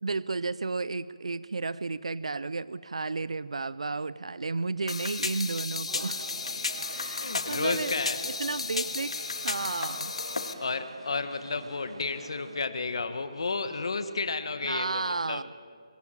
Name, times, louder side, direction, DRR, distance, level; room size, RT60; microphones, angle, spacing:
voice 1, 0.0-6.3 6.9-7.9 8.2-10.1 14.6-15.5, right 3 dB, 70° right, 18 dB, 0.5 m, -33 dB
sound 1, 4.9-10.5, left 3 dB, 65° left, 1.7 m, -33 dB
sound 2, 5.9-12.6, right 3 dB, 50° right, 1.8 m, -47 dB
voice 2, 7.2-8.2 10.6-15.4, left 4 dB, 50° left, 10 dB, 1.4 m, -32 dB
24.0 x 12.0 x 9.0 m, 2.3 s
hypercardioid pair, 175°, 3 cm